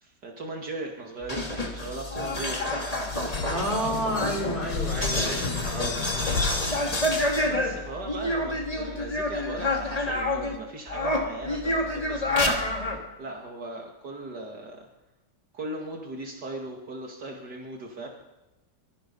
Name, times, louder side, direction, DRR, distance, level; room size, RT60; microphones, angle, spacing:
voice 1, 0.0-2.6 7.4-14.9 15.5-18.1, right 2 dB, 70° right, 0 dB, 2.9 m, -38 dB
sound 1, 1.2-10.6 10.9-13.0, left 1 dB, 20° left, 3.0 m, -28 dB
sound 2, 3.1-8.0, left 6 dB, 75° left, 1.9 m, -33 dB
voice 2, 3.5-6.3, equal, 30° right, -1 dB, 6.0 m, -30 dB
25.5 x 21.5 x 5.5 m, 1.0 s
omnidirectional pair, 1.9 m